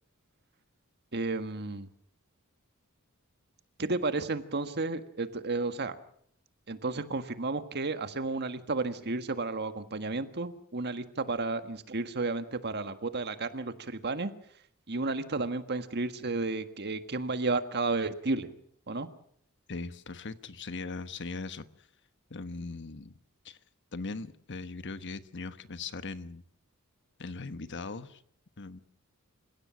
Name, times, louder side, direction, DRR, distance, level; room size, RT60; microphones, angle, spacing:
voice 1, 1.1-1.9 3.8-6.0 6.7-14.3 14.9-18.5 18.9-19.1, right 3 dB, 50° right, 1.6 m, -32 dB
voice 2, 19.7-21.6 22.3-23.2 23.4-23.6 23.9-26.4 27.2-28.2 28.6-28.8, left 3 dB, 55° left, 1.2 m, -39 dB
28.5 x 16.5 x 6.2 m
head